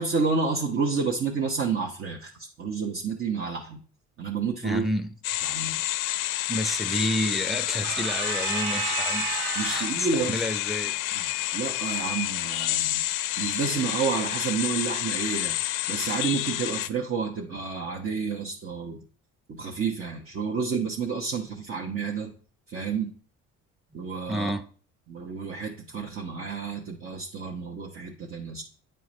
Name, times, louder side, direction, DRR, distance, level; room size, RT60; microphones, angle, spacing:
voice 1, 0.0-3.8 4.2-4.8 5.4-5.8 9.5-10.4 11.1-11.2 11.5-13.0 13.4-15.6 15.9-19.0 19.5-22.3 22.7-23.1 23.9-24.5 25.1-28.6, right 5 dB, 45° right, 1.2 m, -30 dB
voice 2, 4.6-5.1 6.5-9.9 10.3-11.0 11.3-11.4 24.3-24.6, equal, ahead, 0.7 m, -30 dB
sound 1, 5.2-16.9, left 15 dB, 85° left, 0.5 m, -29 dB
sound 2, 7.8-10.1, right 11 dB, 80° right, 0.5 m, -32 dB
9.2 x 4.6 x 3.2 m
cardioid pair, 90°, 31 cm